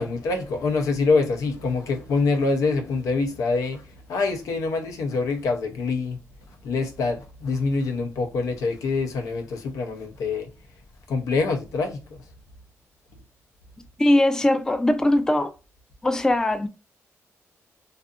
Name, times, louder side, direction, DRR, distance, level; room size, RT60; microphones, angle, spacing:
voice 1, 0.0-3.8 4.1-6.2 6.6-10.5 11.1-12.0, left 3 dB, 90° left, 0.5 m, -25 dB
voice 2, 14.0-15.5 16.0-16.7, left 1 dB, 10° left, 0.3 m, -20 dB
2.6 x 2.4 x 2.3 m
cardioid pair, 100°, 6 cm